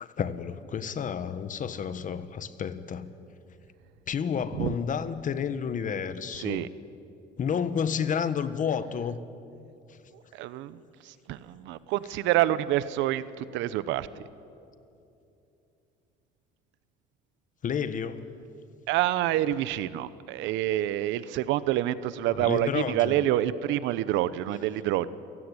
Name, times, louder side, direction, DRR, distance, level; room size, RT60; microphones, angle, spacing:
voice 1, 0.0-3.1 4.1-6.7 7.4-9.2 17.6-18.3 22.4-23.3, left 7 dB, 45° left, 13 dB, 1.4 m, -30 dB
voice 2, 6.3-6.7 10.3-14.2 18.9-25.1, right 13 dB, 85° right, 16 dB, 1.0 m, -27 dB
29.0 x 17.0 x 9.9 m, 2.7 s
cardioid pair, 105°, 19 cm